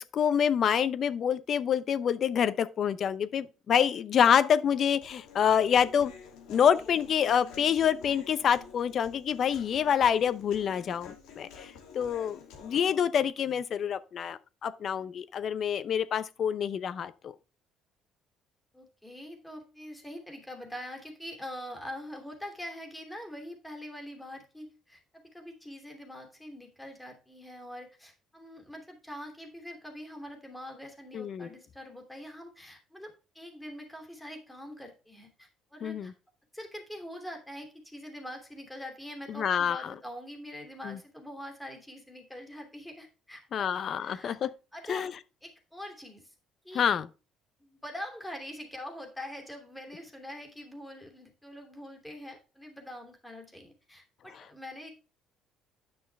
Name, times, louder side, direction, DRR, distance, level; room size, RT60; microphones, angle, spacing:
voice 1, 0.0-6.1 6.5-17.3 31.1-31.5 35.8-36.1 39.3-39.9 40.8-41.0 43.5-44.5 44.9-45.1 46.7-47.1, left 8 dB, 50° left, 0.7 m, -27 dB
Human voice, 5.0-13.0, left 5 dB, 85° left, 2.7 m, -49 dB
voice 2, 18.7-36.1 36.5-45.1 45.4-46.3 46.6-46.8 47.6-54.9, left 1 dB, 5° left, 2.7 m, -44 dB
9.6 x 6.3 x 3.4 m
cardioid pair, 95°, 0 cm